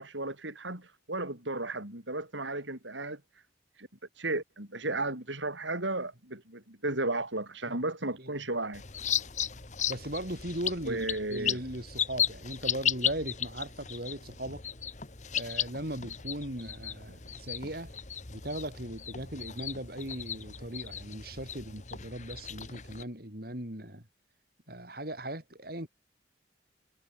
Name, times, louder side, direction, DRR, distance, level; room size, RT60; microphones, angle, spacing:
voice 1, 0.0-3.2 3.8-3.9 4.2-8.8 10.8-11.6, right 2 dB, 80° right, 6.8 m, -34 dB
sound 1, 8.7-23.0, left 8 dB, 40° left, 1.4 m, -35 dB
voice 2, 9.9-14.7 15.3-17.9 18.3-24.1 24.7-25.9, right 1 dB, 50° right, 6.0 m, -38 dB
head